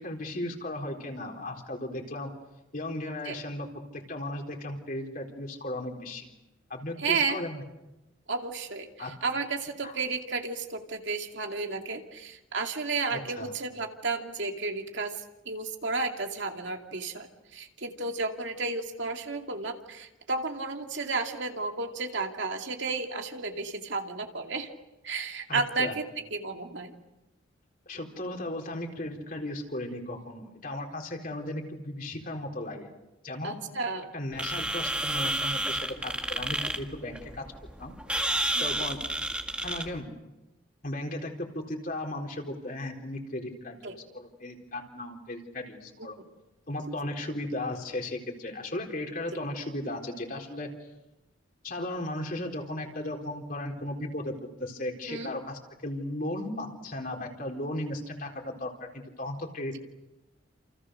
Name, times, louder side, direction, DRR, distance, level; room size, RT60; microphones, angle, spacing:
voice 1, 0.0-2.3 2.7-3.7 3.9-6.3 6.7-7.6 9.0-9.1 9.8-10.0 13.1-13.5 25.5-25.9 27.9-32.9 33.2-33.6 34.1-37.4 37.8-37.9 38.6-39.0 39.6-40.1 40.8-46.2 46.7-50.7 51.6-54.3 54.6-59.8, left 1 dB, 45° left, 1 dB, 4.2 m, -36 dB
voice 2, 7.0-7.4 8.3-8.9 9.2-15.2 15.5-24.7 25.0-26.1 26.3-26.9 33.4-34.1 38.5-38.8 43.8-43.9 49.3-49.4 55.1-55.3, right 3 dB, 65° right, 3 dB, 2.5 m, -32 dB
sound 1, 34.3-40.0, right 1 dB, 5° right, 1.8 m, -31 dB
29.0 x 28.5 x 6.5 m, 0.97 s
head